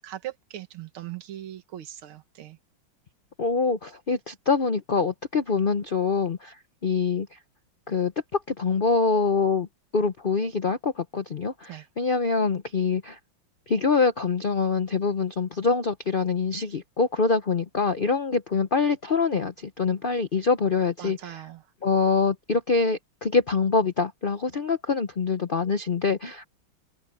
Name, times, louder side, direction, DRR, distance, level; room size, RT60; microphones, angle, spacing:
voice 1, 0.0-2.6 11.7-11.9 21.0-21.6, right 13 dB, 90° right, 2.1 m, -39 dB
voice 2, 3.4-7.4 7.9-9.7 9.9-13.2 13.7-21.5 21.8-26.4, left 4 dB, 85° left, 0.4 m, -25 dB
omnidirectional pair, 2.2 m